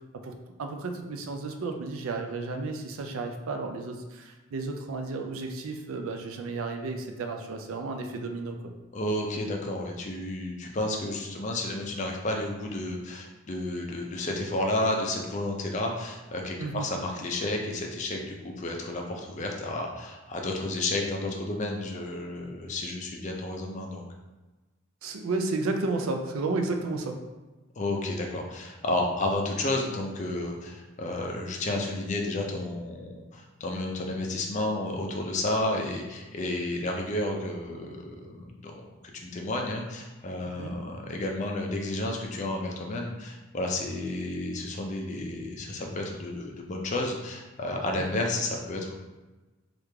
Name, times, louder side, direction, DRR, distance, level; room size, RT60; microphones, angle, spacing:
voice 1, 0.6-8.7 16.6-16.9 25.0-27.2 40.6-40.8 48.1-48.2, right 3 dB, 80° right, 4 dB, 0.4 m, -32 dB
voice 2, 8.9-24.0 27.8-48.9, left 2 dB, 35° left, 1 dB, 0.4 m, -31 dB
3.2 x 2.4 x 3.3 m, 1.2 s
head